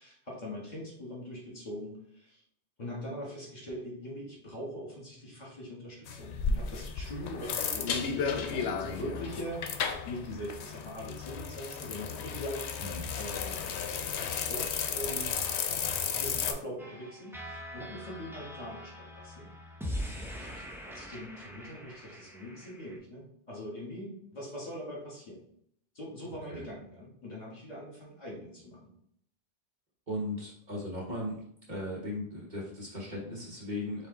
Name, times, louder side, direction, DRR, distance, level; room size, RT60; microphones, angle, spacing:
voice 1, 0.0-2.4 2.8-9.6 10.0-12.8 13.1-15.4 16.1-19.5 20.1-25.4 25.9-28.8, equal, 40° left, -4 dB, 1.6 m, -42 dB
sound 1, 6.1-16.5, left 6 dB, 75° left, 0.8 m, -34 dB
sound 2, 16.8-23.0, equal, 5° right, 0.3 m, -42 dB
voice 2, 30.1-31.4 31.7-34.1, left 1 dB, 45° right, -4 dB, 1.2 m, -37 dB
4.7 x 2.7 x 3.7 m, 0.67 s
omnidirectional pair, 1.2 m